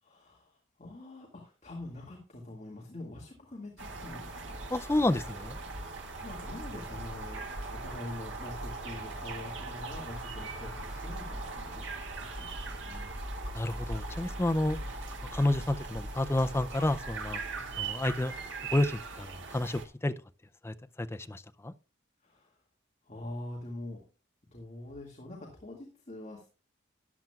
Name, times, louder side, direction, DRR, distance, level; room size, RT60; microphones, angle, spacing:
voice 1, 0.0-4.6 6.1-13.1 14.8-14.9 17.5-17.7 22.2-22.6 23.0-24.0 24.5-26.5, left 1 dB, 35° left, 2.1 m, -45 dB
sound 1, 3.8-19.9, right 3 dB, 75° right, 1.9 m, -40 dB
voice 2, 4.7-5.6 13.5-14.8 15.3-17.4 17.8-18.3 18.7-20.1 20.6-21.7, left 1 dB, 15° left, 0.4 m, -30 dB
13.5 x 10.5 x 2.3 m
head